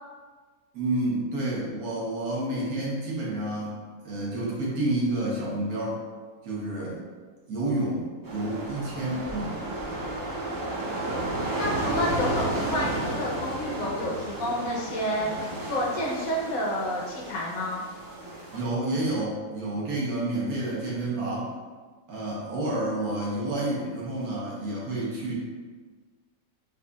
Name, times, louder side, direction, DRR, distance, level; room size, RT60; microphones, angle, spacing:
voice 1, 0.7-3.8 4.0-6.0 6.4-7.0 7.5-9.6 18.5-21.5 22.1-25.4, right 1 dB, 70° right, -6 dB, 1.4 m, -29 dB
sound 1, 8.2-18.6, right 2 dB, 30° right, 0.4 m, -32 dB
voice 2, 11.6-17.8, equal, 70° left, -3 dB, 1.1 m, -29 dB
5.3 x 2.4 x 2.3 m, 1.4 s
omnidirectional pair, 1.6 m